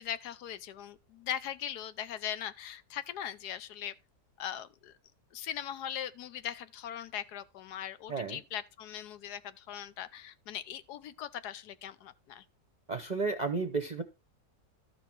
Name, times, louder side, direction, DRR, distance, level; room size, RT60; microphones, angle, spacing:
voice 1, 0.0-3.9 4.4-4.9 5.3-12.4, left 10 dB, 85° left, 1.3 m, -40 dB
voice 2, 12.9-14.0, right 4 dB, 35° right, 0.7 m, -32 dB
13.0 x 5.8 x 4.5 m
omnidirectional pair, 1.7 m